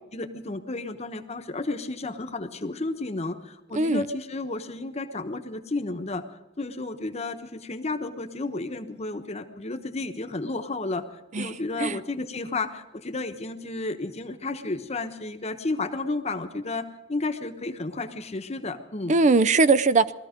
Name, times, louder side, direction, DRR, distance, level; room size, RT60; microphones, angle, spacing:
voice 1, 0.1-6.2 6.6-11.0 11.4-19.2, left 2 dB, 35° left, 8 dB, 1.1 m, -32 dB
voice 2, 3.7-4.1 11.3-12.0 19.1-20.1, right 3 dB, 40° right, 17 dB, 0.5 m, -21 dB
19.5 x 13.5 x 5.1 m, 1.1 s
head